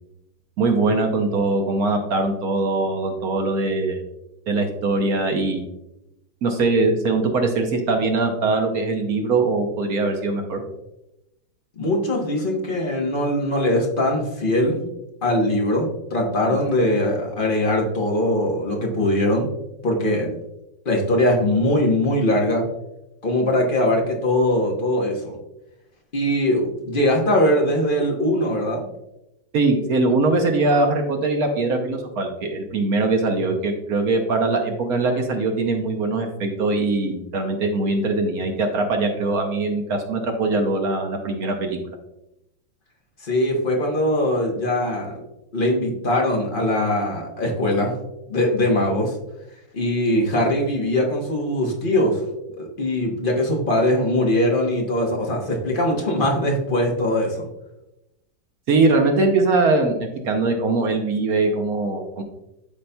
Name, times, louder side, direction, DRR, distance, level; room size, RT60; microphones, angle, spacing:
voice 1, 0.6-4.0 4.5-5.6 6.4-10.6 16.5-16.6 29.5-42.0 58.7-62.2, right 3 dB, 60° right, 3 dB, 1.0 m, -22 dB
voice 2, 11.8-14.8 15.2-19.5 19.8-20.4 20.8-22.6 23.2-25.4 26.1-28.8 43.2-45.2 45.5-47.9 48.3-49.1 49.7-52.2 52.6-57.5, left 1 dB, 40° left, 0 dB, 0.8 m, -21 dB
12.0 x 4.1 x 2.2 m, 0.90 s
omnidirectional pair, 2.2 m